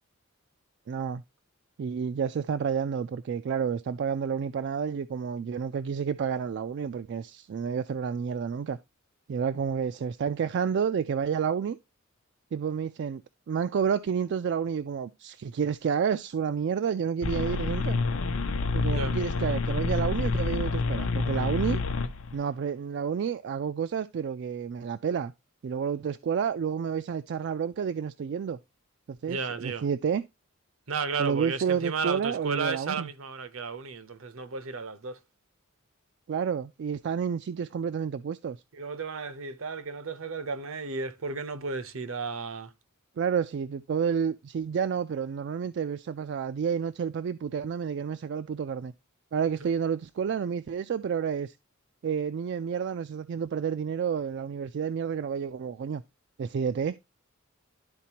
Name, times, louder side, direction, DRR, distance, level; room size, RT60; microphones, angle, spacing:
voice 1, 0.9-1.2 1.8-8.8 9.3-11.8 12.5-13.2 13.5-18.0 18.7-21.8 22.3-25.3 25.6-28.6 29.1-30.2 31.2-33.1 36.3-38.6 43.2-48.9 49.3-51.5 52.0-56.0 56.4-57.0, right 7 dB, 55° right, 0.3 m, -30 dB
sound 1, 17.2-22.4, left 4 dB, 70° left, 0.6 m, -28 dB
voice 2, 29.3-29.8 30.9-35.2 38.7-42.7 49.6-49.7, right 4 dB, 70° right, 0.8 m, -33 dB
11.5 x 4.1 x 2.8 m
head